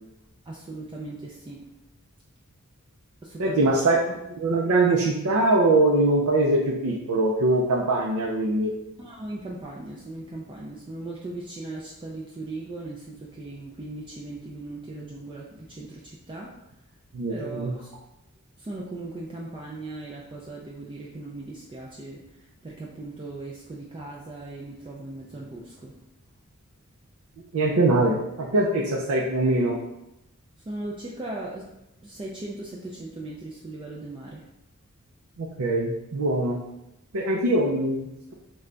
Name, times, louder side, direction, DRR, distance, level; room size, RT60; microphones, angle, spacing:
voice 1, 0.5-1.7 3.2-3.8 9.0-16.5 17.3-17.9 18.6-26.0 30.7-31.7 32.0-34.4, right 2 dB, 25° right, -3 dB, 0.3 m, -38 dB
voice 2, 3.4-4.0 4.4-8.7 17.1-17.7 27.5-29.8 35.4-36.6 37.1-38.3, right 2 dB, 90° right, -2 dB, 0.5 m, -22 dB
3.2 x 2.2 x 3.8 m, 0.89 s
head